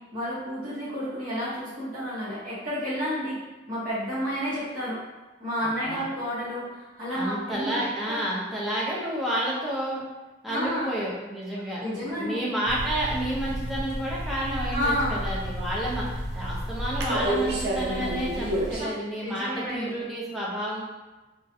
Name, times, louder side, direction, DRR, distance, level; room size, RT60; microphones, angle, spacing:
voice 1, 0.1-3.4 3.7-5.0 5.4-8.2 10.5-10.9 11.8-12.4 14.7-15.2 18.8-18.9 19.2-20.0, equal, 50° right, -11 dB, 1.0 m, -30 dB
voice 2, 5.6-6.0 7.1-10.0 10.4-11.8 12.1-20.8, right 1 dB, ahead, -6 dB, 0.5 m, -30 dB
sound 1, 12.6-18.8, right 1 dB, 65° right, 0.4 m, -30 dB
2.3 x 2.1 x 2.7 m, 1.2 s
head